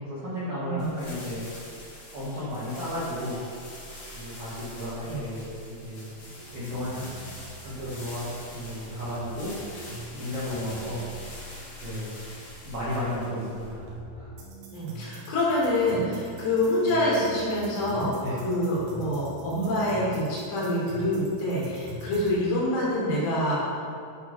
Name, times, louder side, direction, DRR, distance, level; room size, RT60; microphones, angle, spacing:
voice 1, 0.0-1.5 2.1-3.3 4.1-6.1 6.5-7.1 7.6-9.5 10.1-11.5 11.8-12.1 12.6-13.8 14.1-14.3 18.2-18.4, left 1 dB, 65° right, -11 dB, 1.8 m, -34 dB
sound 1, 0.8-13.9, left 1 dB, 55° left, 2.1 m, -44 dB
sound 2, 6.4-22.4, right 2 dB, 80° right, 2.1 m, -43 dB
voice 2, 14.7-23.7, left 1 dB, 75° left, -7 dB, 4.5 m, -26 dB
10.5 x 4.0 x 4.6 m, 2.4 s
omnidirectional pair, 5.8 m